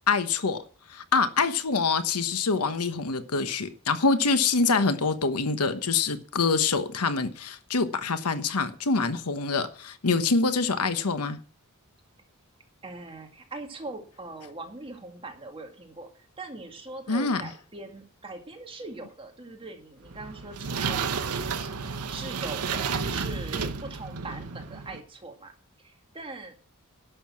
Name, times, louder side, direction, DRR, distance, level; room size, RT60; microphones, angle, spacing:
voice 1, 0.1-0.6 0.9-11.4 17.1-17.4, left 4 dB, 85° left, 1.1 m, -25 dB
voice 2, 12.8-16.1 16.4-25.5 25.8-26.5, right 2 dB, 25° right, 2.0 m, -41 dB
sound 1, 20.0-25.0, right 5 dB, 90° right, 1.0 m, -31 dB
11.5 x 6.9 x 7.4 m
head